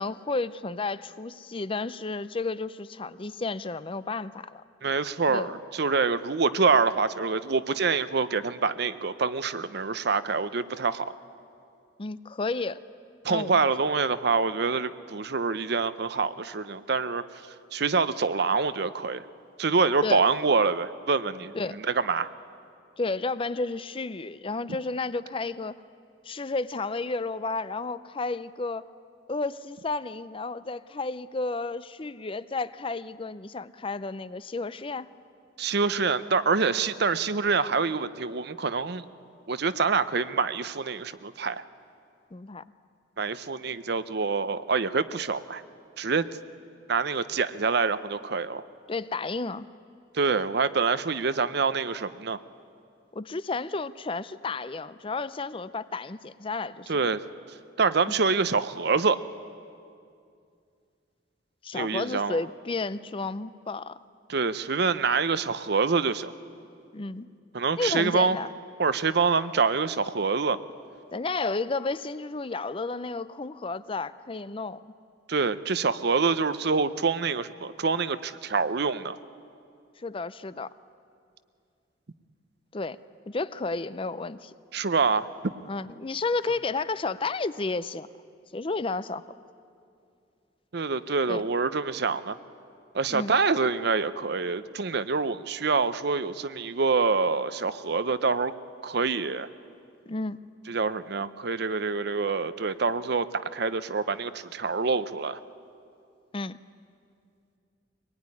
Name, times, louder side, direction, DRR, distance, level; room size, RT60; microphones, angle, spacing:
voice 1, 0.0-4.6 5.3-5.5 12.0-12.8 13.3-13.6 20.0-20.2 21.5-21.8 23.0-25.8 26.2-28.8 29.3-35.1 42.3-42.6 48.9-49.7 53.1-56.9 61.6-64.0 66.9-67.3 67.7-68.5 71.1-74.8 80.0-80.7 82.7-83.0 83.3-84.5 85.7-88.1 88.5-89.2 91.3-91.4 93.1-93.3 100.1-100.5 106.3-106.6, left 3 dB, 30° left, 15 dB, 0.5 m, -32 dB
voice 2, 4.8-11.1 13.2-17.2 17.7-19.2 19.6-22.3 35.6-39.0 39.5-41.6 43.2-45.6 46.0-46.3 46.9-48.6 50.1-52.4 56.9-57.2 57.8-59.2 61.7-62.4 64.3-66.3 67.5-68.4 68.8-70.6 75.3-79.2 84.7-85.5 90.7-92.4 92.9-98.5 98.8-99.5 100.7-105.4, right 4 dB, 55° right, 14 dB, 0.7 m, -26 dB
24.0 x 20.0 x 9.7 m, 2.4 s
head